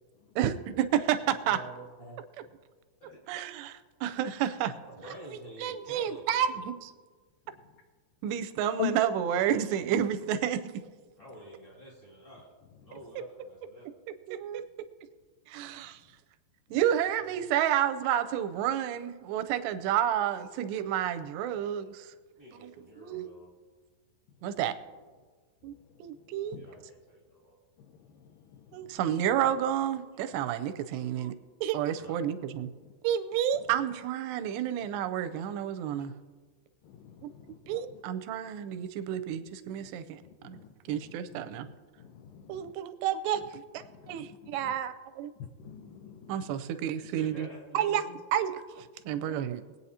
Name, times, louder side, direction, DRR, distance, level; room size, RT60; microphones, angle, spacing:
voice 1, 0.4-1.6 3.3-4.7 5.6-6.9 8.2-10.6 14.3-14.6 15.5-16.0 16.7-22.1 22.6-22.7 23.0-23.3 24.4-24.8 25.6-25.7 26.0-26.6 28.7-31.3 31.6-32.7 33.0-36.1 37.2-37.3 37.7-40.6 40.9-41.7 42.5-45.3 46.3-47.5 47.7-48.0 48.3-49.6, right 10 dB, 90° right, 11 dB, 2.8 m, -30 dB
voice 2, 1.2-2.2 3.0-3.3 4.9-6.6 11.2-12.5 12.8-13.9 22.4-23.5 26.4-27.6 31.9-32.2 47.0-48.2, right 1 dB, 20° left, -5 dB, 1.4 m, -48 dB
voice 3, 26.1-26.8 27.8-29.0 30.3-30.4 32.8-32.9 36.8-38.0 39.8-39.9 40.2-41.1 41.6-42.7 43.8-44.7 45.4-46.6 49.1-49.3, left 10 dB, 85° left, 5 dB, 1.9 m, -44 dB
22.0 x 8.9 x 2.8 m, 1.4 s
omnidirectional pair, 4.7 m